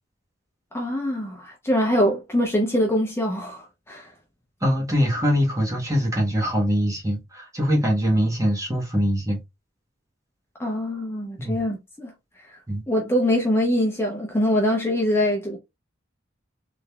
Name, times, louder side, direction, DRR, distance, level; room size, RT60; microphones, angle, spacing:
voice 1, 0.7-4.1 10.6-12.6 12.9-15.6, left 1 dB, 10° left, 0.8 m, -24 dB
voice 2, 4.6-9.4 11.4-11.6 12.7-12.8, equal, 15° right, 1.4 m, -23 dB
3.8 x 3.4 x 2.3 m
head